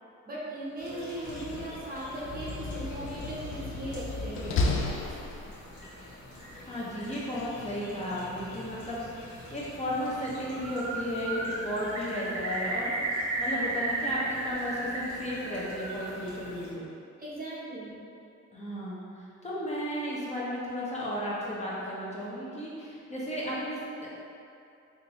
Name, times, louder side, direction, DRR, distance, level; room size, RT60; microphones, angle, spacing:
voice 1, 0.3-4.6 17.2-18.0, right 1 dB, 30° right, -6 dB, 0.7 m, -38 dB
sound 1, 0.8-16.7, left 1 dB, 75° left, 1.2 m, -47 dB
Slam, 1.1-5.8, left 3 dB, 45° left, 0.4 m, -33 dB
voice 2, 6.7-9.2 9.5-16.9 18.5-24.1, equal, 20° left, -7 dB, 0.8 m, -34 dB
Bird, 10.4-11.0 11.3-15.0 15.3-16.1, right 2 dB, 60° right, 0.8 m, -33 dB
3.7 x 2.5 x 2.9 m, 2.6 s
cardioid pair, 90°, 30 cm